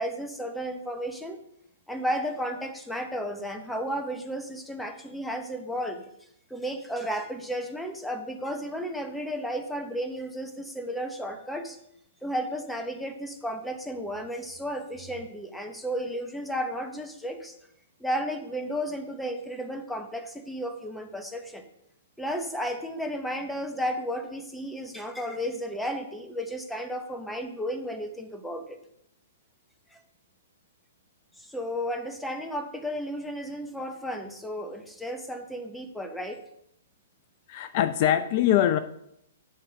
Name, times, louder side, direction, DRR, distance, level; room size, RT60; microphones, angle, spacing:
voice 1, 0.0-1.4 1.9-6.1 6.5-11.8 12.2-17.5 18.0-21.6 22.2-28.8 29.9-30.0 31.4-36.4, equal, 5° left, 5 dB, 0.9 m, -33 dB
voice 2, 37.5-38.8, left 11 dB, 45° left, 11 dB, 0.5 m, -23 dB
11.0 x 3.8 x 5.8 m, 0.76 s
figure-of-eight pair, 115°, 0 cm